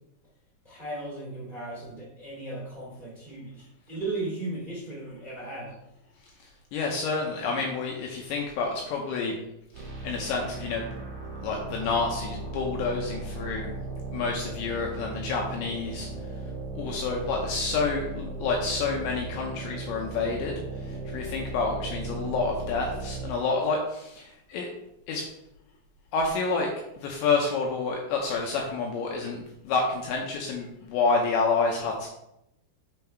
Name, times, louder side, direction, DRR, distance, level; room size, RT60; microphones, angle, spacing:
voice 1, 0.6-5.7 7.5-7.7, right 2 dB, 25° right, -7 dB, 1.0 m, -36 dB
voice 2, 6.7-9.4 9.8-10.9 11.4-13.7 14.1-16.1 16.7-20.5 20.8-24.7 25.1-25.3 26.1-32.1, left 4 dB, 80° left, 0 dB, 2.6 m, -29 dB
sound 1, 9.7-23.3, right 2 dB, 70° right, 1.5 m, -37 dB
6.8 x 5.5 x 4.5 m, 0.85 s
omnidirectional pair, 5.9 m